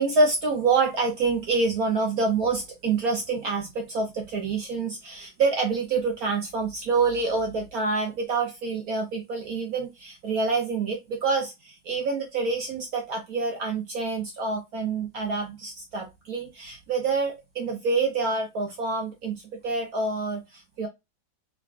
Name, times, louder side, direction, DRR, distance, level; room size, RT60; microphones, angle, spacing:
voice 1, 0.0-20.9, right 4 dB, 65° right, 1.0 m, -27 dB
3.5 x 3.5 x 2.4 m
omnidirectional pair, 2.1 m